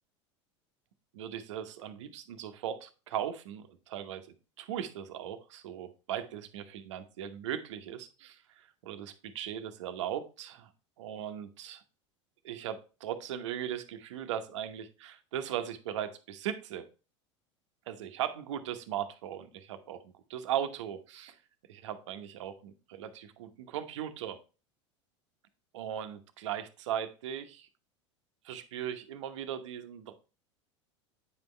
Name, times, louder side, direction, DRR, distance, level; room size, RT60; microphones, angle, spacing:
voice 1, 1.1-4.3 4.6-10.7 11.0-11.8 12.4-16.9 17.9-21.4 21.7-24.4 25.7-27.7 28.4-30.1, right 10 dB, 70° right, 9 dB, 1.0 m, -38 dB
8.9 x 5.3 x 3.3 m, 0.33 s
hypercardioid pair, 85°, 16 cm